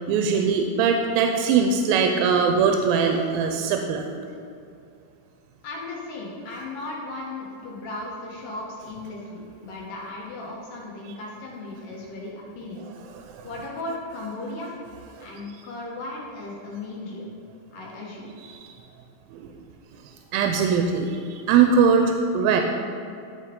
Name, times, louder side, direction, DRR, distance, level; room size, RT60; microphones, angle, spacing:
voice 1, 0.1-4.1 13.2-13.5 15.2-15.3 19.3-19.5 20.3-22.6, right 6 dB, 90° right, 3 dB, 2.4 m, -21 dB
voice 2, 5.6-12.9 13.4-14.7 15.2-17.3 17.7-18.4, left 2 dB, 70° left, -3 dB, 2.9 m, -36 dB
14.0 x 4.9 x 3.8 m, 2.5 s
omnidirectional pair, 4.1 m